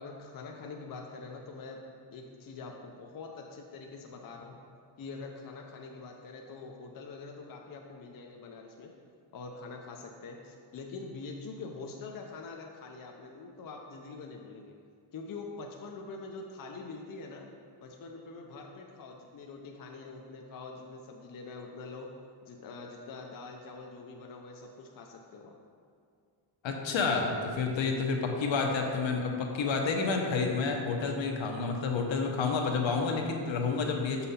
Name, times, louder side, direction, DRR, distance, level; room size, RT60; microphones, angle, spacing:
voice 1, 0.0-1.8 2.1-4.6 5.0-8.9 9.3-14.7 15.1-17.5 17.8-22.1 22.4-25.5 28.6-28.8, left 4 dB, 45° left, 1 dB, 0.6 m, -44 dB
voice 2, 26.6-34.3, left 4 dB, 70° left, 2 dB, 1.0 m, -29 dB
6.6 x 5.6 x 4.2 m, 2.2 s
wide cardioid pair, 135°, 47 cm